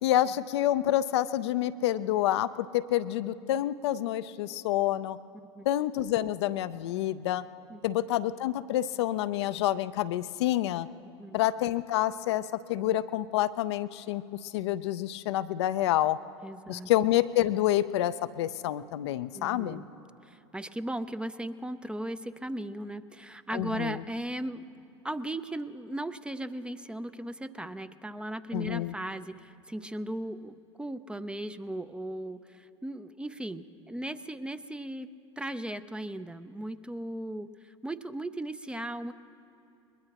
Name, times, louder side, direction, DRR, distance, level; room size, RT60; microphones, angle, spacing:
voice 1, 0.0-5.2 5.7-7.4 7.8-10.9 11.3-16.2 16.7-19.8 23.5-24.0 28.5-28.9, left 13 dB, 65° left, 13 dB, 0.5 m, -28 dB
voice 2, 16.4-16.9 19.3-19.8 20.2-24.6 25.0-35.1 35.4-39.1, right 1 dB, 5° right, 12 dB, 0.5 m, -37 dB
22.0 x 21.0 x 2.9 m, 2.9 s
figure-of-eight pair, 80°, 15 cm